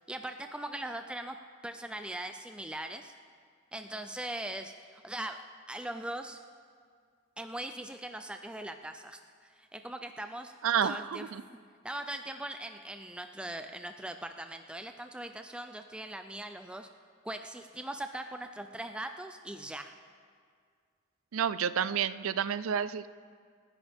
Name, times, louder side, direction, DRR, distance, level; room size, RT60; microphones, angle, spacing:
voice 1, 0.1-1.4 1.6-3.1 3.7-5.4 5.7-6.4 7.4-10.5 10.8-11.3 11.8-16.9 17.2-19.9, right 1 dB, 5° right, 6 dB, 0.4 m, -40 dB
voice 2, 10.6-11.4 21.3-23.1, right 8 dB, 85° right, 16 dB, 0.4 m, -30 dB
28.5 x 10.5 x 3.5 m, 2.1 s
head